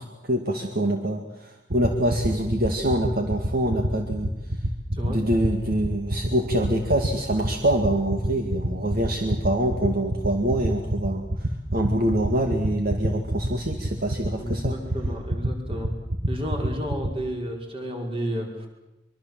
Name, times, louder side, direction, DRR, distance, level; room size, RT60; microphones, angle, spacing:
voice 1, 0.0-4.3 5.1-14.8, right 1 dB, 55° right, 4 dB, 2.2 m, -25 dB
sound 1, 1.7-17.1, right 1 dB, 75° right, 1.9 m, -25 dB
voice 2, 14.3-15.9 16.3-18.7, equal, 30° right, 2 dB, 5.4 m, -32 dB
24.0 x 23.5 x 7.7 m, 0.93 s
head